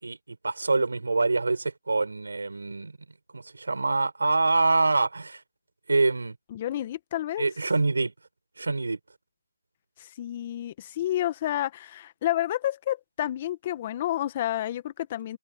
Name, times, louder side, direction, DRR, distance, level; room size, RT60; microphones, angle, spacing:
voice 1, 0.0-2.9 3.3-5.4 5.9-6.3 7.4-8.1 8.6-9.0, right 3 dB, 75° right, 5.8 m, -25 dB
voice 2, 6.5-7.5 10.0-15.4, left 12 dB, 25° left, 1.4 m, -30 dB
figure-of-eight pair, 165°, 0 cm